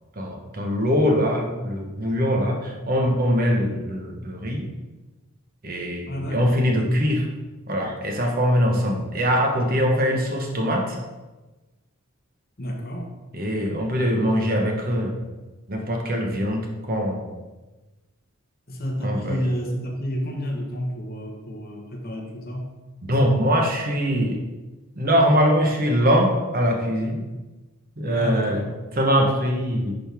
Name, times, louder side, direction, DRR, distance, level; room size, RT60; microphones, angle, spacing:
voice 1, 0.2-4.6 5.6-7.3 7.7-11.0 13.3-15.1 15.7-16.6 16.9-17.3 19.0-19.4 23.1-24.4 25.0-27.2 28.0-28.7 29.0-29.9, equal, 40° right, 1 dB, 1.1 m, -22 dB
voice 2, 6.1-6.6 12.6-13.1 18.7-22.7 28.1-28.7, equal, 40° left, 1 dB, 1.2 m, -29 dB
10.5 x 4.1 x 3.6 m, 1.2 s
head